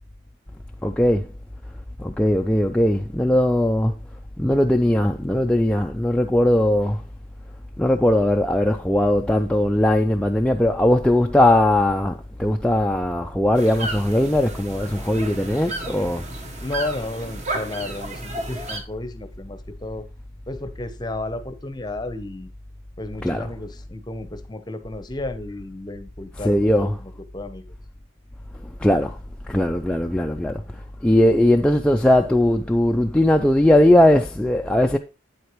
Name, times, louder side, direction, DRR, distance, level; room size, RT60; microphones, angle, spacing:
voice 1, 0.8-1.2 2.0-3.9 4.4-7.0 7.8-16.3 23.2-23.4 26.4-26.9 28.8-29.2 29.5-30.6 31.0-35.0, left 1 dB, 5° left, 0.3 m, -19 dB
sound 1, 13.5-18.8, right 2 dB, 35° right, 1.1 m, -33 dB
voice 2, 16.6-20.1 20.5-22.5 23.0-27.8, left 2 dB, 20° left, 0.7 m, -33 dB
8.7 x 8.0 x 3.0 m
head